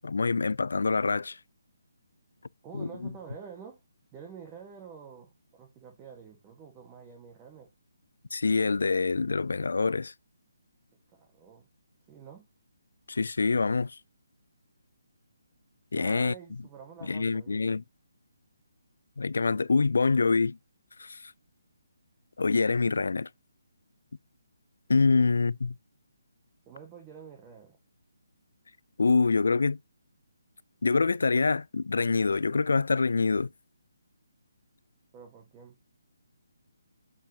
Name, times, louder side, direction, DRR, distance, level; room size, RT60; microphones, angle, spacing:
voice 1, 0.0-1.4 2.7-2.9 8.3-10.1 13.1-14.0 15.9-16.3 17.1-17.8 19.2-20.6 21.0-21.3 22.4-23.3 24.9-25.7 29.0-29.8 30.8-33.5, left 4 dB, 75° left, 0.4 m, -25 dB
voice 2, 2.6-3.8 4.1-7.7 11.1-11.7 12.1-12.5 15.9-17.7 25.1-25.3 26.7-27.8 35.1-35.8, right 6 dB, 15° right, 1.6 m, -48 dB
7.2 x 7.1 x 2.9 m
hypercardioid pair, 160°, 0 cm